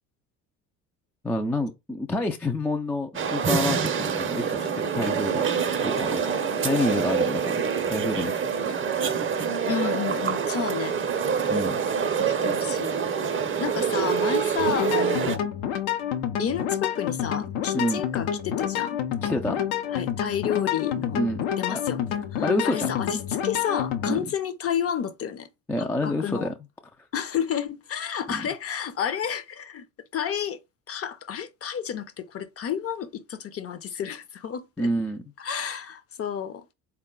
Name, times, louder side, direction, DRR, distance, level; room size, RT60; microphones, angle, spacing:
voice 1, 1.2-5.4 5.8-6.2 6.6-7.6 7.9-8.3 8.6-8.8 11.5-11.8 17.7-18.0 19.2-19.6 21.1-21.4 21.7-21.8 22.4-22.9 24.1-24.2 25.7-26.5 28.3-28.5 34.8-35.2, left 1 dB, 5° left, 0.3 m, -28 dB
sound 1, 3.1-15.4, right 6 dB, 30° right, 0.6 m, -26 dB
voice 2, 9.7-11.0 12.2-13.0 13.6-15.5 16.4-19.0 19.9-21.3 21.6-25.5 25.8-26.5 27.1-29.9 30.1-30.6 30.9-34.9 35.4-36.6, left 8 dB, 35° left, 0.6 m, -31 dB
sound 2, 14.6-24.2, left 10 dB, 70° left, 0.7 m, -28 dB
3.8 x 2.3 x 3.7 m
hypercardioid pair, 70°, 42 cm